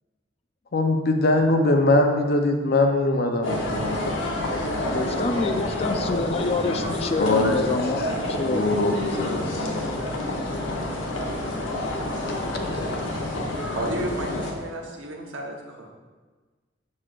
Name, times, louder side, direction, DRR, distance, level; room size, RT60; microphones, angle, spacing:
voice 1, 0.7-5.5 6.1-6.2 7.2-7.6 8.5-9.5 10.4-10.7 11.4-12.2, left 2 dB, 55° left, 4 dB, 0.7 m, -23 dB
sound 1, 3.4-14.5, left 1 dB, 90° left, 1.0 m, -28 dB
voice 2, 4.9-8.8, left 3 dB, 30° left, 8 dB, 0.3 m, -27 dB
voice 3, 13.7-15.9, right 1 dB, 85° right, 1 dB, 1.0 m, -32 dB
7.3 x 6.4 x 2.5 m, 1.3 s
head